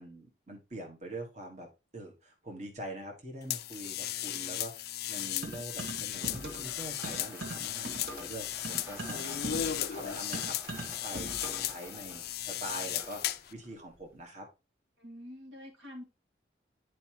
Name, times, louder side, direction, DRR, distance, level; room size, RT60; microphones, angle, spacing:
voice 1, 0.0-1.7 1.9-14.5, right 1 dB, 40° right, 1 dB, 1.5 m, -44 dB
sound 1, 3.5-13.5, left 12 dB, 55° left, 0.4 m, -36 dB
sound 2, 5.4-6.7 7.0-11.8, right 2 dB, 55° right, 1.6 m, -41 dB
sound 3, 5.5-14.2, left 1 dB, 10° right, 1.7 m, -52 dB
voice 2, 15.0-16.0, left 1 dB, 85° right, 1 dB, 2.1 m, -46 dB
9.4 x 4.8 x 3.0 m, 0.27 s
head